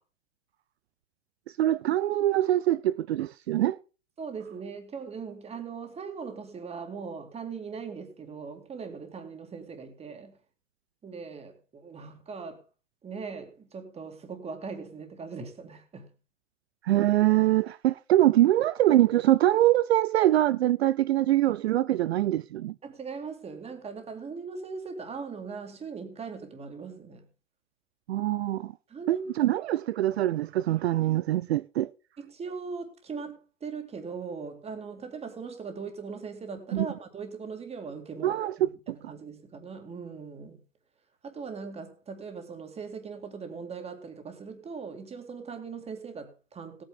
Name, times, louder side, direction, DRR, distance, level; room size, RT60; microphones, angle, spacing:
voice 1, 1.6-3.8 16.8-22.7 28.1-28.7 29.1-31.9 36.7-36.9 38.2-39.1, right 14 dB, 55° right, 0.5 m, -24 dB
voice 2, 4.2-10.4 11.0-12.6 13.0-16.1 22.8-27.3 28.9-29.3 32.2-40.6 41.2-46.8, right 5 dB, 15° right, 2.3 m, -40 dB
17.5 x 9.0 x 3.7 m
figure-of-eight pair, 105°, 38 cm